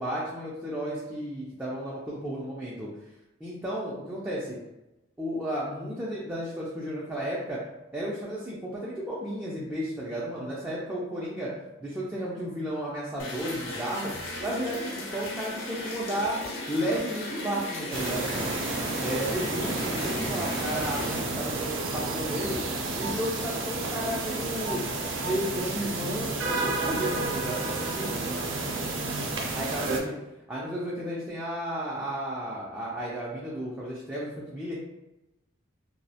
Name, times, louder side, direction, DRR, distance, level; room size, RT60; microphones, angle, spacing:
voice 1, 0.0-2.9 3.4-4.6 5.2-7.6 7.9-11.5 11.8-14.1 14.4-16.4 16.7-18.6 19.0-22.6 22.9-24.8 25.2-28.2 29.5-30.0 30.5-34.7, equal, 10° right, -7 dB, 0.3 m, -33 dB
sound 1, 13.2-21.2, left 1 dB, 75° left, 0.5 m, -37 dB
sound 2, 17.9-30.0, right 2 dB, 75° right, 0.4 m, -31 dB
2.3 x 2.0 x 2.7 m, 0.96 s
head